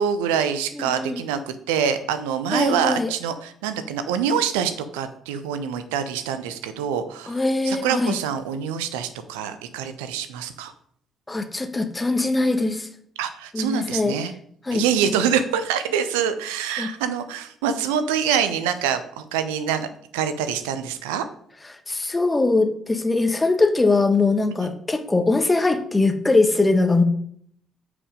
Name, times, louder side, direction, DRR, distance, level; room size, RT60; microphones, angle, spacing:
voice 1, 0.0-7.4 7.6-10.7 13.2-14.3 14.7-19.9 20.1-21.3 24.6-24.7, right 8 dB, 70° right, 11 dB, 0.6 m, -25 dB
voice 2, 0.7-1.2 2.5-3.1 7.3-8.1 11.3-12.9 13.5-14.2 14.6-14.8 15.2-15.3 16.8-16.9 21.9-27.0, left 3 dB, 20° left, 7 dB, 1.3 m, -21 dB
8.5 x 5.1 x 5.1 m, 0.64 s
figure-of-eight pair, 45°, 0 cm